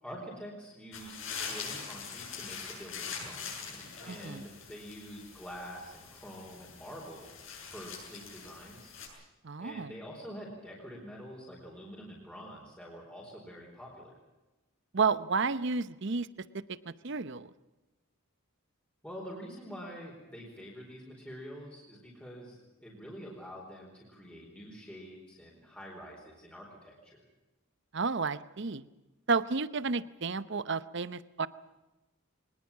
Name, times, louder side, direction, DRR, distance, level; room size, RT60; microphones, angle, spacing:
voice 1, 0.0-7.3 7.7-8.9 9.6-14.1 19.0-27.2, equal, 5° left, -3 dB, 4.4 m, -46 dB
sound 1, 0.9-9.1, left 6 dB, 60° left, 7.6 m, -43 dB
voice 2, 4.1-4.4 9.4-9.9 14.9-16.3 16.5-17.5 27.9-28.8 29.3-31.5, right 4 dB, 55° right, 16 dB, 0.8 m, -31 dB
23.5 x 20.0 x 7.4 m, 1.1 s
head